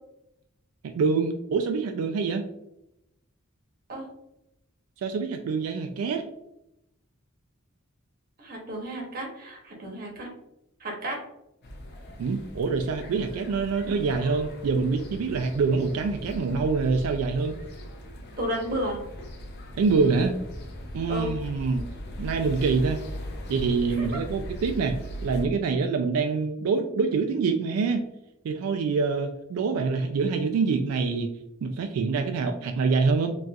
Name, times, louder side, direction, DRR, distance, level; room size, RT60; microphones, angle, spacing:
voice 1, 1.0-2.4 5.0-6.3 12.2-17.6 19.8-20.3 20.9-21.8 22.2-23.0 23.5-25.0 25.2-28.0 28.4-31.3 31.6-33.4, right 4 dB, 85° right, 5 dB, 0.3 m, -25 dB
voice 2, 8.4-10.3 10.8-11.2 18.4-19.0 21.1-21.3 24.0-24.1, equal, 45° right, 0 dB, 0.8 m, -32 dB
sound 1, 11.6-25.5, equal, 50° left, 0.5 m, -39 dB
4.0 x 2.4 x 2.3 m, 0.85 s
head